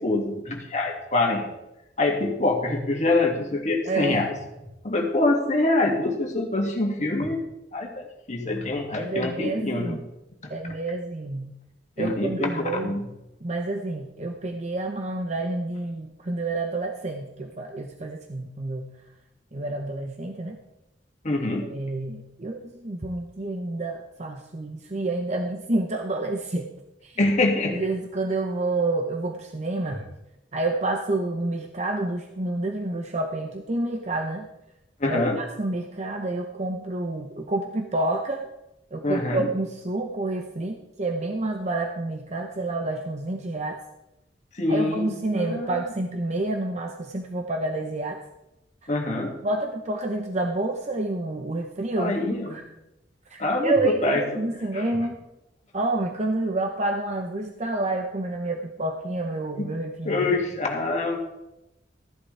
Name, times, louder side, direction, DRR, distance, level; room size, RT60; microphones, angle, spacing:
voice 1, 0.0-1.5 2.0-4.3 4.8-7.4 7.7-10.0 10.4-10.5 12.0-13.1 21.2-21.7 27.2-27.8 35.0-35.4 39.0-39.5 44.5-45.8 48.9-49.4 52.0-52.6 53.4-54.2 54.7-54.9 59.6-59.7 60.1-61.2, left 2 dB, 40° left, 1 dB, 2.1 m, -25 dB
voice 2, 3.9-4.2 8.9-10.0 10.5-11.5 12.0-13.0 13.4-18.9 19.5-20.6 21.7-26.7 27.0-27.2 27.7-30.1 30.5-34.5 35.0-38.5 38.9-43.8 44.7-48.2 48.8-48.9 49.4-52.6 53.3-55.2 55.7-60.4, right 2 dB, 40° right, 4 dB, 0.8 m, -29 dB
15.0 x 11.0 x 3.4 m, 0.90 s
head